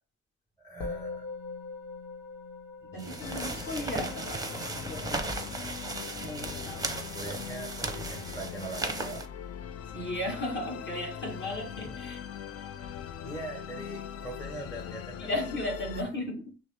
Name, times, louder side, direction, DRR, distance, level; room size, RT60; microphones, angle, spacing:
voice 1, 0.6-1.3 2.8-4.1 4.5-4.7 7.1-9.3 11.8-12.0 13.2-15.3, right 2 dB, 10° left, 1.0 m, -42 dB
Musical instrument, 0.8-10.3, left 3 dB, 80° left, 1.1 m, -45 dB
voice 2, 2.9-5.3 6.2-6.9 9.9-12.2 15.2-16.4, left 1 dB, 40° left, 1.8 m, -36 dB
sound 1, 3.0-9.3, right 3 dB, 10° right, 0.7 m, -36 dB
Musical instrument 2, 3.2-16.0, left 9 dB, 55° left, 0.5 m, -41 dB
6.0 x 2.0 x 3.5 m
cardioid pair, 90°, 30 cm